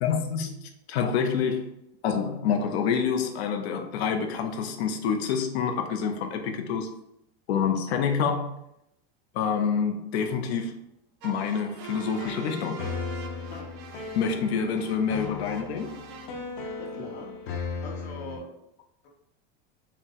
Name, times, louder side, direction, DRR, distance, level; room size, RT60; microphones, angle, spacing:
voice 1, 0.0-1.7 2.0-6.9 7.5-8.6 9.3-10.8 11.2-12.9 14.2-15.9, left 6 dB, 90° left, 6 dB, 0.7 m, -27 dB
sound 1, 11.2-16.3, right 6 dB, 35° right, 0.4 m, -44 dB
sound 2, 11.9-18.4, left 5 dB, 55° left, 0.9 m, -37 dB
voice 2, 16.8-18.5 19.0-19.1, left 2 dB, 70° left, -1 dB, 1.4 m, -42 dB
4.4 x 2.1 x 3.7 m, 0.80 s
supercardioid pair, 170°, 31 cm